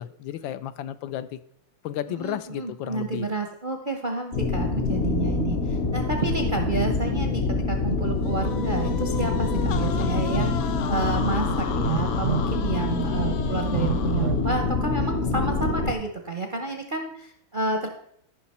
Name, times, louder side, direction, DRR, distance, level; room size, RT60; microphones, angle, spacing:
voice 1, 0.0-1.4 1.8-3.3 6.4-6.5, left 11 dB, 85° left, 12 dB, 1.4 m, -33 dB
voice 2, 2.2-17.9, right 3 dB, 50° right, 4 dB, 0.6 m, -30 dB
sound 1, 4.3-15.9, left 3 dB, 55° left, 0.8 m, -26 dB
sound 2, 8.2-14.6, left 8 dB, 70° left, 1.2 m, -36 dB
Telephone, 10.4-10.6 11.8-12.5 13.7-14.5, right 9 dB, 75° right, 0.9 m, -29 dB
14.0 x 5.8 x 4.2 m, 0.69 s
omnidirectional pair, 2.1 m